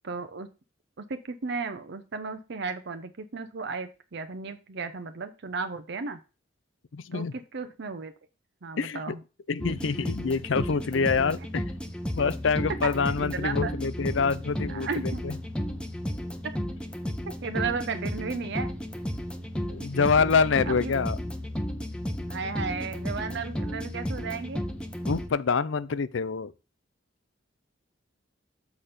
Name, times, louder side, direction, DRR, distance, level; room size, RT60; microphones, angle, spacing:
voice 1, 0.0-0.5 1.0-6.2 7.1-8.1 8.6-9.2 11.4-11.5 13.0-13.7 14.7-15.2 17.2-18.7 20.7-20.9 22.3-24.6, right 4 dB, 65° right, 0.7 m, -34 dB
voice 2, 6.9-7.3 8.8-9.1 9.5-11.6 12.2-15.4 19.7-21.2 25.1-26.5, left 5 dB, 75° left, 0.5 m, -26 dB
sound 1, 9.6-25.3, equal, 5° left, 0.8 m, -33 dB
7.1 x 4.4 x 5.0 m
head